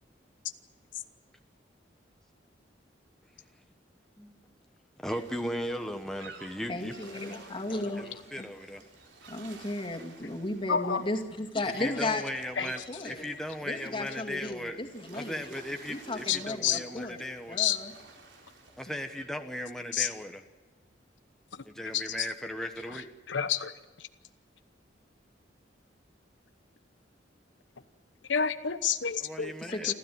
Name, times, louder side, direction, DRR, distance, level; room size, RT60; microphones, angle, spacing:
voice 1, 5.0-6.9 7.3-7.4 7.7-8.8 11.6-14.8 15.1-17.6 18.8-20.4 21.7-23.1 29.2-29.9, equal, 5° left, 5 dB, 1.2 m, -37 dB
sound 1, 5.1-19.3, right 4 dB, 75° right, 4.1 m, -53 dB
voice 2, 6.7-8.5 9.3-12.2 12.6-13.3 13.6-15.6 15.9-17.2 17.5-17.9 29.6-29.9, left 2 dB, 30° left, 3 dB, 2.4 m, -35 dB
voice 3, 10.7-11.0 12.6-12.7 16.3-17.1 17.6-17.8 19.9-20.1 21.5-21.6 21.9-22.3 22.9-23.7 24.0-24.1 28.3-29.5 29.8-29.9, left 8 dB, 85° left, 10 dB, 1.0 m, -29 dB
28.0 x 13.0 x 9.5 m, 1.2 s
head